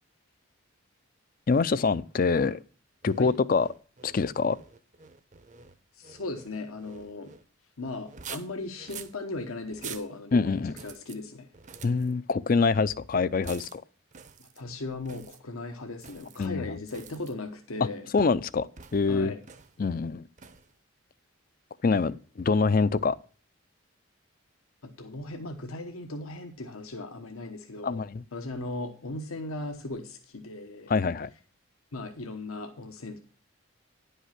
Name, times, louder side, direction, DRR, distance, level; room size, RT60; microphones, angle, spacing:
voice 1, 1.5-2.6 3.0-3.7 4.0-4.6 10.3-10.7 11.8-13.8 16.4-16.6 18.1-19.3 19.8-20.3 21.8-23.2 27.8-28.2 30.9-31.3, left 4 dB, 40° left, 0.4 m, -25 dB
sound 1, 3.0-7.5 8.0-9.2 9.7-10.1 10.7-11.2 11.5-12.1 13.4-13.8 14.1-14.6 15.0-15.4 16.0-16.5 16.9-17.3 18.8-19.1 19.4-19.8 20.4-20.7, right 7 dB, 35° right, 0.7 m, -46 dB
voice 2, 6.0-7.3 7.8-11.5 14.4-18.1 19.1-19.4 24.8-28.0 28.3-30.9 31.9-33.2, left 2 dB, 85° left, 1.1 m, -37 dB
10.5 x 5.6 x 5.8 m
head